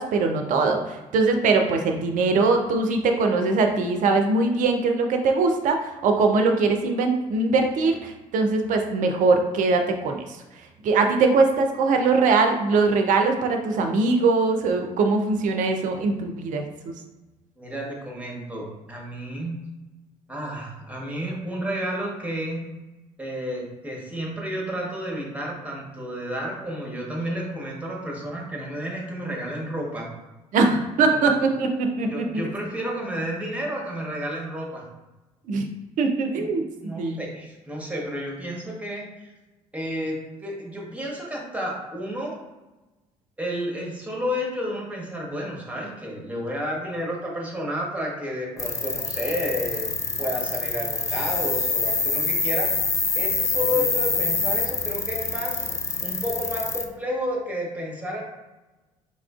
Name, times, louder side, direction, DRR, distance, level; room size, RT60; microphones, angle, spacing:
voice 1, 0.0-10.3 10.8-16.9 30.5-32.4 35.5-35.7 36.0-37.2, right 3 dB, 50° right, 4 dB, 0.5 m, -22 dB
voice 2, 17.6-19.6 20.3-22.6 23.2-30.1 31.1-31.2 32.1-34.8 36.4-36.5 36.8-39.3 39.7-42.4 43.4-49.9 50.2-55.7 56.0-58.2, equal, 10° right, -2 dB, 1.0 m, -31 dB
sound 1, 48.6-56.8, left 4 dB, 20° left, 0.4 m, -26 dB
3.9 x 2.4 x 2.3 m, 1.1 s
figure-of-eight pair, 50°, 17 cm